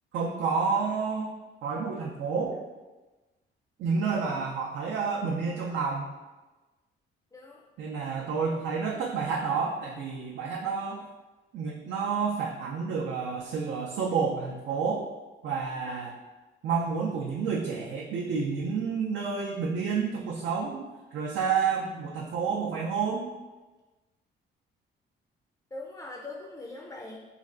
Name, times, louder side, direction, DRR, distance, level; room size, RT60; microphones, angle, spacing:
voice 1, 0.1-1.3 1.6-2.6 3.8-6.1 7.8-11.0 11.5-15.1 15.4-16.2 16.6-20.9 21.1-23.3, right 5 dB, 75° right, -3 dB, 0.5 m, -29 dB
voice 2, 7.3-7.6 25.7-27.2, left 2 dB, 15° left, 0 dB, 0.4 m, -41 dB
3.2 x 2.4 x 3.8 m, 1.2 s
cardioid pair, 90°, 20 cm